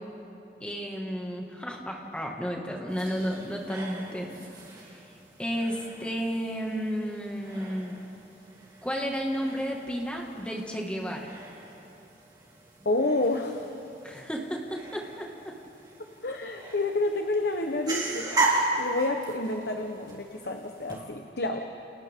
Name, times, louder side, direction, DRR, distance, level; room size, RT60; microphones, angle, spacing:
voice 1, 0.6-4.4 5.4-7.9 8.8-11.3 14.0-15.6, equal, 5° left, -1 dB, 2.0 m, -32 dB
sound 1, 2.9-21.0, right 2 dB, 25° right, 3.3 m, -36 dB
voice 2, 12.8-13.7 16.2-21.6, left 2 dB, 65° left, 3 dB, 1.1 m, -29 dB
29.5 x 29.0 x 3.7 m, 2.8 s
head